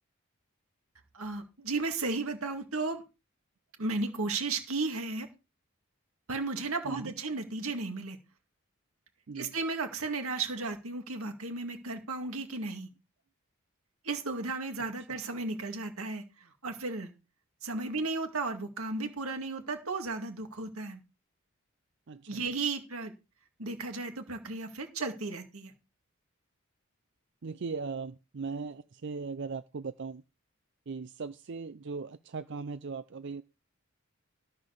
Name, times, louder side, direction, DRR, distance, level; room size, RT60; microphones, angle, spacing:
voice 1, 1.1-3.0 3.8-5.3 6.3-8.2 9.3-12.9 14.0-16.2 16.6-17.1 17.6-21.0 22.3-23.1 23.6-25.7, right 3 dB, 85° right, 6 dB, 2.1 m, -34 dB
voice 2, 22.1-22.4 27.4-30.2 30.9-33.4, right 4 dB, 55° right, 13 dB, 0.5 m, -38 dB
13.0 x 5.4 x 6.6 m, 0.28 s
head